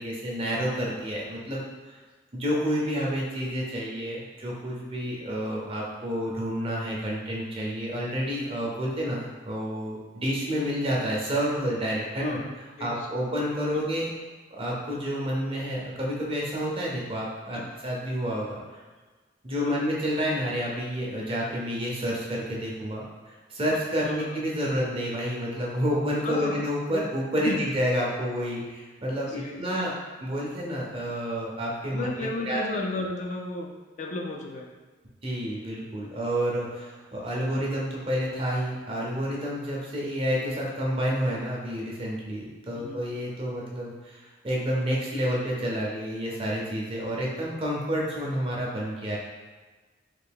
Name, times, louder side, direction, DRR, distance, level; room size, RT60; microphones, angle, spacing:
voice 1, 0.0-2.0 2.3-12.4 12.8-14.1 14.5-18.8 19.4-32.1 32.5-32.6 35.2-49.2, equal, 30° right, -3 dB, 0.7 m, -29 dB
voice 2, 12.2-13.1 13.7-13.8 17.5-17.7 19.6-19.8 24.0-24.5 26.2-27.0 27.4-27.6 29.3-29.7 31.8-33.7 34.0-34.8 42.7-43.0, left 2 dB, 40° left, 1 dB, 0.3 m, -34 dB
3.3 x 2.5 x 3.5 m, 1.3 s
head